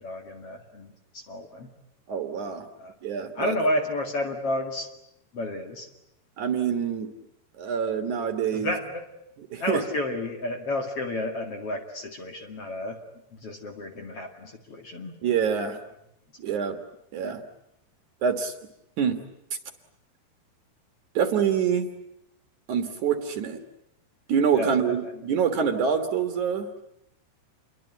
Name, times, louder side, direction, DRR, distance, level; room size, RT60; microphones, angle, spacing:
voice 1, 0.0-1.7 2.8-2.9 3.3-4.9 5.3-5.9 8.5-9.1 9.6-13.0 13.3-15.2 16.5-16.6 24.5-25.1, left 1 dB, 45° left, 4 dB, 2.7 m, -31 dB
voice 2, 2.1-2.7 3.0-3.6 6.4-7.1 7.6-8.7 9.5-9.8 15.2-15.8 16.4-16.8 17.1-17.4 18.2-18.5 19.0-19.2 21.1-21.9 22.7-23.6 24.3-26.7, right 7 dB, 60° right, 7 dB, 2.6 m, -25 dB
28.0 x 22.5 x 9.2 m, 0.80 s
omnidirectional pair, 4.5 m